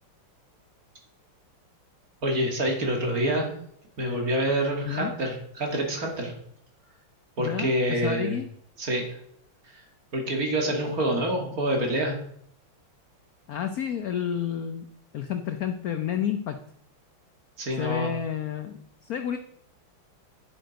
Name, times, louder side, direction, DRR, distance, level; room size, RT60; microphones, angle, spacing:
voice 1, 2.2-3.5 4.0-6.3 7.4-8.3 8.8-9.0 9.7-9.8 10.1-12.2 17.6-18.1, right 1 dB, 45° right, 2 dB, 2.2 m, -26 dB
voice 2, 7.4-8.5 13.5-14.9 15.1-16.6 17.8-19.4, left 9 dB, 75° left, 8 dB, 0.8 m, -30 dB
9.7 x 7.8 x 5.1 m, 0.67 s
omnidirectional pair, 2.4 m